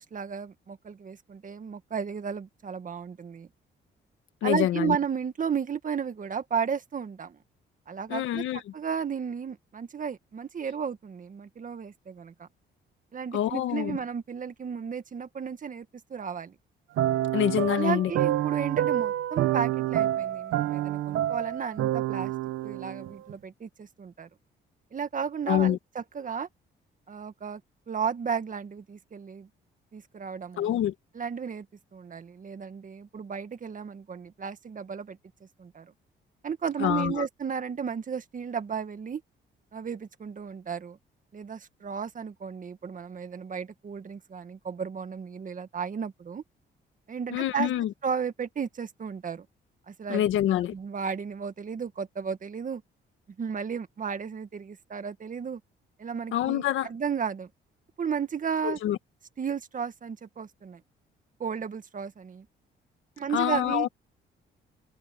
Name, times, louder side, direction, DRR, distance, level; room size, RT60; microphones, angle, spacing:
voice 1, 0.0-3.5 4.4-7.4 7.9-12.5 13.1-16.5 17.7-22.3 22.6-24.3 24.9-26.5 27.1-27.6 27.9-29.5 29.9-30.7 31.1-31.6 31.9-35.2 35.6-35.9 36.4-39.2 39.7-41.0 41.3-46.4 47.1-47.7 48.0-49.4 49.9-50.2 50.7-52.8 53.4-55.6 56.0-57.5 58.0-58.8 59.4-60.8 61.4-62.5 63.2-63.9, right 6 dB, 40° right, 1.8 m, -33 dB
voice 2, 4.4-5.0 8.1-8.6 13.3-14.0 17.3-18.1 25.5-25.8 30.6-30.9 36.8-37.2 47.3-47.9 50.1-50.7 56.3-56.9 58.6-59.0 63.3-63.9, left 12 dB, 85° left, 1.6 m, -26 dB
sound 1, 17.0-23.3, right 13 dB, 90° right, 1.2 m, -28 dB
open air
cardioid pair, 90°, 20 cm